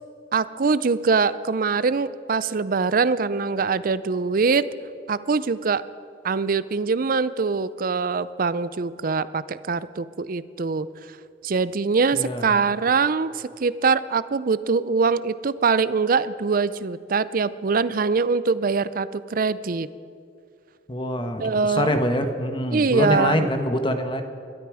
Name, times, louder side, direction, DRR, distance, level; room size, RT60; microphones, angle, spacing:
voice 1, 0.3-4.7 5.1-5.8 6.2-10.9 11.4-19.9 21.4-21.9 22.7-23.5, right 4 dB, 50° right, 16 dB, 0.5 m, -23 dB
voice 2, 12.1-12.6 20.9-24.2, left 1 dB, 30° left, 7 dB, 1.2 m, -25 dB
21.5 x 12.5 x 4.9 m, 2.4 s
head